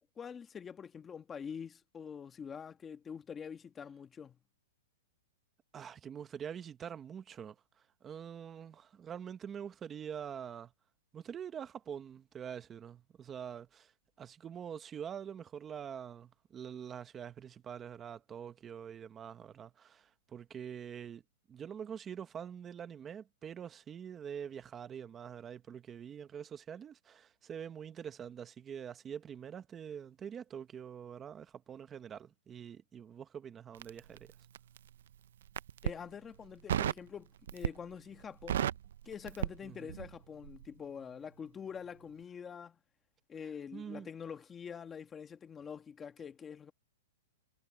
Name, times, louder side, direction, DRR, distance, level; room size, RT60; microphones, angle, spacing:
voice 1, 0.2-4.4 35.8-38.8 39.0-42.8 43.3-46.7, left 7 dB, 15° left, 1.3 m, -45 dB
voice 2, 5.7-10.7 11.1-13.9 14.2-21.2 21.5-34.3 39.6-39.9 43.7-44.1, right 8 dB, 15° right, 1.1 m, -45 dB
Crackle, 33.7-34.9 35.4-36.0 36.7-37.1 37.5-37.9 38.2-40.2 40.4-40.7, right 10 dB, 70° right, 0.5 m, -34 dB
hypercardioid pair, 160°, 0 cm